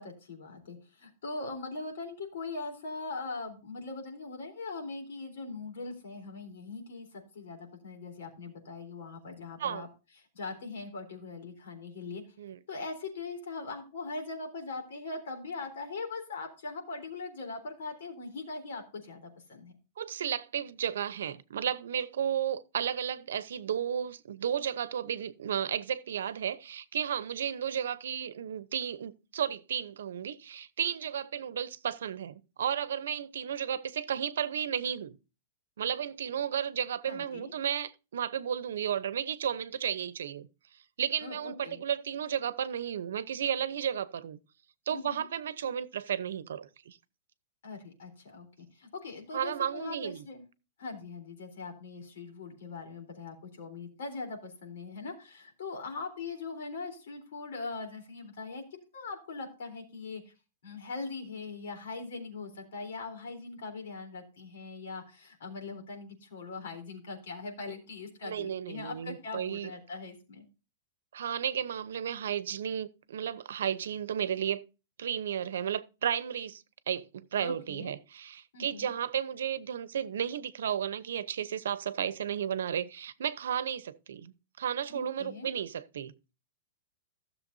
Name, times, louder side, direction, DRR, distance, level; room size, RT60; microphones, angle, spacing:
voice 1, 0.0-9.9 10.3-12.2 12.7-19.7 37.1-37.5 41.2-41.8 44.9-45.3 47.6-50.4 50.8-58.6 58.9-60.2 60.6-70.4 77.4-77.9 78.5-78.9 84.9-85.5, left 3 dB, 75° left, 3.7 m, -41 dB
voice 2, 20.0-35.2 35.8-40.5 41.0-44.4 44.9-47.0 49.3-50.2 68.2-69.7 71.1-74.6 75.0-86.1, right 9 dB, 85° right, 0.8 m, -33 dB
16.0 x 7.0 x 2.7 m
supercardioid pair, 165°, 0 cm